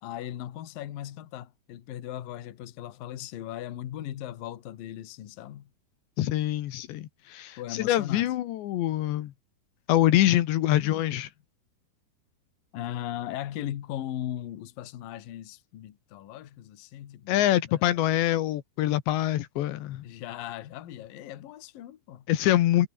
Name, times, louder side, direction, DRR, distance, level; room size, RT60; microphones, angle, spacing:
voice 1, 0.0-5.7 7.6-8.3 12.7-18.0 20.0-22.3, left 12 dB, 60° left, 3.1 m, -38 dB
voice 2, 6.2-9.3 9.9-11.3 17.3-20.0 22.3-22.9, left 14 dB, 80° left, 3.6 m, -25 dB
omnidirectional pair, 5.0 m